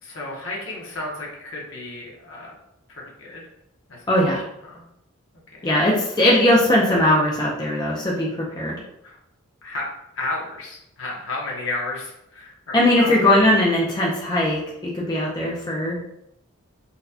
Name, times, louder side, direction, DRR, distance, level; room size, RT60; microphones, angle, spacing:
voice 1, 0.0-2.5 2.9-3.4 3.9-4.0 4.3-4.8 5.6-5.7 9.0-9.2 9.6-9.9 10.1-13.3, left 2 dB, 65° left, -3 dB, 1.0 m, -33 dB
voice 2, 4.1-4.4 5.6-8.3 8.6-8.7 12.7-16.0, left 1 dB, 20° left, -4 dB, 0.5 m, -19 dB
4.0 x 2.2 x 2.7 m, 0.80 s
head